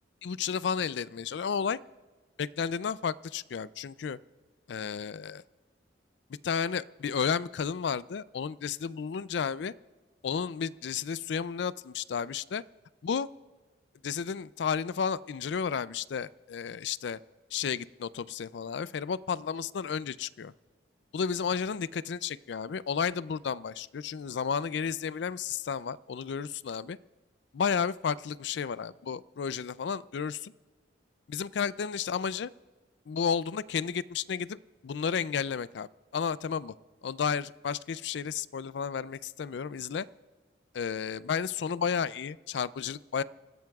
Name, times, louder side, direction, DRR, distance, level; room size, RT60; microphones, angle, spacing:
voice 1, 0.2-1.8 2.4-4.2 4.7-5.4 6.4-9.7 10.2-12.6 13.0-13.3 14.0-17.2 17.5-20.5 21.1-27.0 27.5-30.5 31.3-32.5 33.1-36.7 37.0-40.1 40.7-43.2, left 6 dB, 70° left, 18 dB, 0.4 m, -32 dB
29.0 x 15.0 x 2.4 m, 1.4 s
head